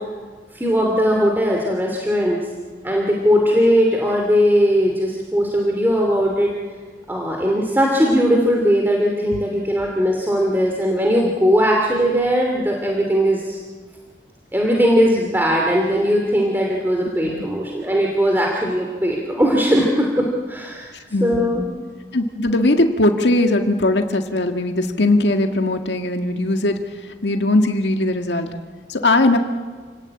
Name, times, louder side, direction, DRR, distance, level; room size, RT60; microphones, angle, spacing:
voice 1, 0.5-2.4 2.8-6.5 7.1-13.6 14.5-20.9 21.2-21.6, equal, 10° right, -1 dB, 2.9 m, -19 dB
voice 2, 21.1-21.5 22.1-28.5 28.9-29.4, left 2 dB, 85° left, 5 dB, 1.8 m, -19 dB
29.0 x 18.5 x 8.9 m, 1.5 s
head